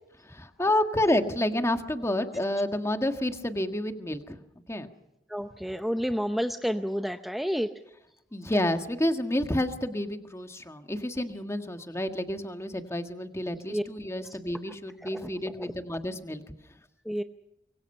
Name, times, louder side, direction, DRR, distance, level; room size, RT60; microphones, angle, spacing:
voice 1, 0.3-4.4 4.7-4.9 8.3-16.4, left 1 dB, 15° left, 7 dB, 1.6 m, -29 dB
voice 2, 5.3-7.7 13.7-13.8 14.1-14.3 15.0-15.3 15.6-15.7 17.1-17.2, equal, ahead, 7 dB, 0.7 m, -30 dB
25.5 x 23.0 x 5.5 m, 0.87 s
head